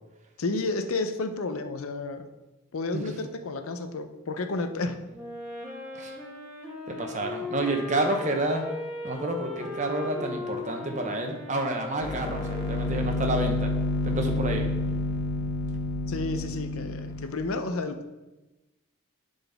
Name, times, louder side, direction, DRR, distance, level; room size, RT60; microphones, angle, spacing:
voice 1, 0.4-2.3 2.7-5.0 16.1-18.0, left 3 dB, 75° left, 8 dB, 0.6 m, -31 dB
Wind instrument woodwind instrument, 5.1-13.4, left 2 dB, 5° right, 1.4 m, -38 dB
voice 2, 6.9-8.6 9.0-13.7 14.0-14.7, right 1 dB, 35° right, 3 dB, 0.8 m, -29 dB
sound 1, 12.0-17.4, left 2 dB, 50° left, 0.9 m, -29 dB
11.5 x 4.0 x 3.5 m, 1.1 s
head